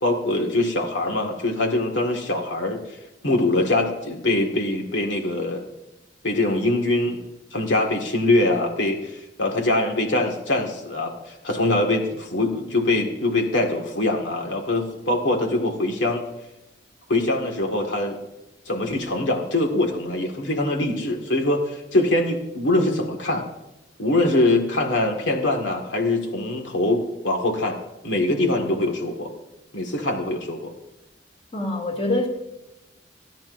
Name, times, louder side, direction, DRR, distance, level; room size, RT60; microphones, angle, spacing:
voice 1, 0.0-3.0 3.2-5.6 6.2-7.2 7.5-16.2 17.1-18.2 18.7-23.4 24.0-27.8 28.0-29.3 29.7-30.7, left 2 dB, 85° left, 3 dB, 1.9 m, -23 dB
voice 2, 31.5-32.3, left 1 dB, 35° left, 1 dB, 2.8 m, -24 dB
29.5 x 10.5 x 2.6 m, 0.97 s
head